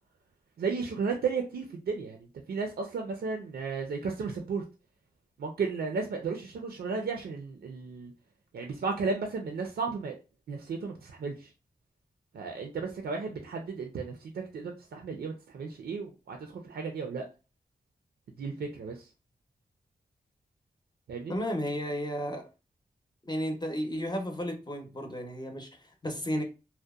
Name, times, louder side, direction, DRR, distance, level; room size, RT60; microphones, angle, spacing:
voice 1, 0.6-4.6 5.4-8.1 8.5-10.2 10.5-11.5 12.3-17.3 18.4-19.1 21.1-21.3, right 4 dB, 80° right, 0.4 m, -34 dB
voice 2, 21.3-22.5 23.2-26.4, equal, 25° left, 0.7 m, -33 dB
2.7 x 2.1 x 2.3 m
cardioid pair, 55°, 16 cm